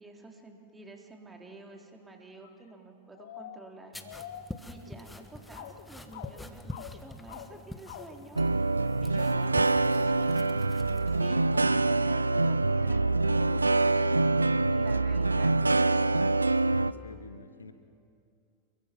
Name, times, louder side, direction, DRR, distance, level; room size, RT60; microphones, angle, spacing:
voice 1, 0.0-4.0 4.6-8.4 9.0-10.6 11.1-14.4 14.7-15.6, right 2 dB, 10° right, 2 dB, 3.4 m, -49 dB
sound 1, 1.4-1.5 2.4-2.7 3.1-5.3 5.5-8.3 11.4-11.5 12.5-12.8 13.2-15.3, left 10 dB, 55° left, 1.1 m, -47 dB
sound 2, 3.9-11.3, left 2 dB, 5° left, 1.3 m, -46 dB
sound 3, 8.4-16.9, right 2 dB, 80° right, 0.5 m, -25 dB
voice 2, 16.5-17.7, left 3 dB, 75° left, 8 dB, 1.5 m, -45 dB
28.0 x 22.5 x 6.0 m, 2.4 s
figure-of-eight pair, 90°, 0 cm